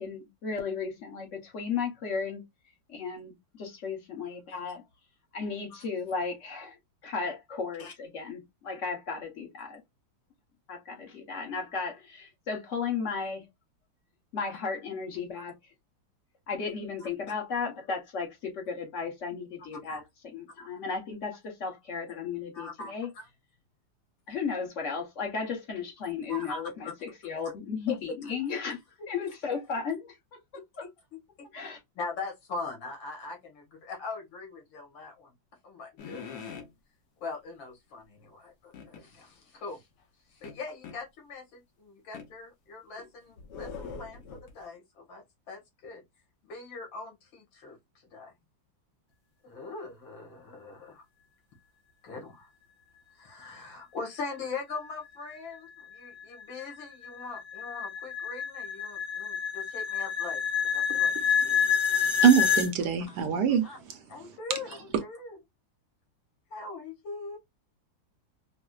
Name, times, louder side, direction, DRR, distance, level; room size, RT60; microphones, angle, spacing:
voice 1, 0.0-2.4 2.9-3.3 3.6-4.8 5.3-6.8 7.0-9.8 10.7-13.4 14.3-15.5 16.5-20.0 20.3-23.1 24.3-28.8 29.1-30.1 31.5-31.8, left 5 dB, 45° left, 1.1 m, -34 dB
voice 2, 4.3-4.6 5.7-5.8 7.8-7.9 9.6-9.7 15.4-15.5 17.0-17.1 19.7-20.0 20.6-20.7 22.5-23.3 26.3-26.9 27.9-28.6 29.2-29.3 30.5-30.9 31.4-31.5 31.9-35.3 35.6-36.4 37.2-39.9 40.3-46.0 46.4-48.3 49.4-51.0 52.0-52.5 53.1-61.7 62.8-63.3 63.6-63.8 64.1-65.4 66.5-67.4, left 4 dB, 80° left, 2.2 m, -41 dB
sound 1, 36.0-36.7 38.7-39.0 40.4-41.0 42.1-42.3 43.0-44.6, left 5 dB, 65° left, 1.3 m, -42 dB
sound 2, 55.5-62.7, left 7 dB, 20° left, 0.9 m, -28 dB
voice 3, 62.2-63.7, right 8 dB, 70° right, 1.2 m, -22 dB
4.7 x 2.1 x 2.3 m
omnidirectional pair, 2.0 m